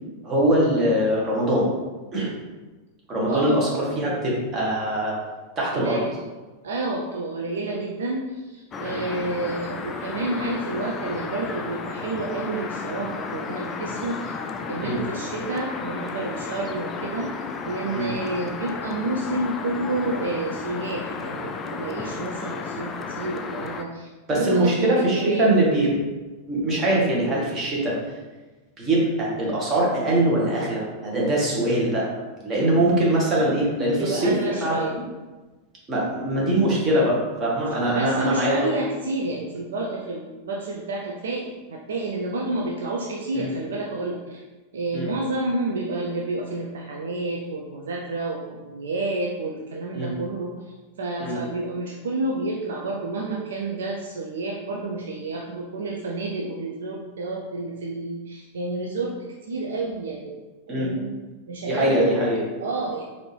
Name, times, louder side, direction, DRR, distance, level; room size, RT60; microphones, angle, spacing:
voice 1, 0.2-1.7 2.1-2.3 3.1-5.2 5.6-6.0 8.8-9.0 14.8-15.0 17.9-18.0 24.3-25.9 26.5-28.0 28.8-32.1 32.4-35.0 35.9-38.7 43.3-43.5 44.9-45.1 49.9-50.1 51.2-51.4 60.7-60.9 61.7-62.4, right 1 dB, 25° right, -4 dB, 1.3 m, -22 dB
voice 2, 3.3-3.6 5.7-6.2 6.6-14.4 14.7-17.3 17.7-25.6 34.0-34.9 37.9-44.4 44.7-50.5 51.0-60.4 60.7-61.1 61.5-62.2 62.6-63.0, right 2 dB, 65° right, -1 dB, 0.4 m, -29 dB
sound 1, 8.7-23.8, left 4 dB, 25° left, 0.3 m, -33 dB
4.2 x 2.6 x 3.3 m, 1.2 s
figure-of-eight pair, 90°, 0 cm